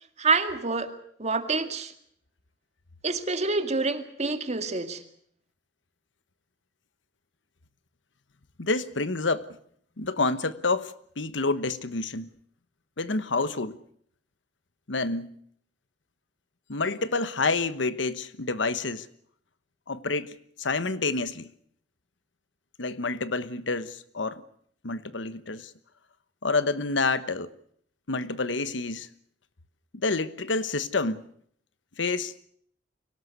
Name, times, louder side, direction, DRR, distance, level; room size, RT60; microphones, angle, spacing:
voice 1, 0.2-0.9 1.2-1.9 3.0-5.0, right 3 dB, 40° right, 2.1 m, -27 dB
voice 2, 8.6-9.5 10.0-12.3 13.0-13.8 14.9-15.3 16.7-19.1 19.9-21.5 22.8-24.4 24.8-25.7 26.4-27.5 28.1-29.1 29.9-31.2 32.0-32.3, left 3 dB, 80° left, 1.2 m, -28 dB
24.0 x 18.0 x 8.2 m
head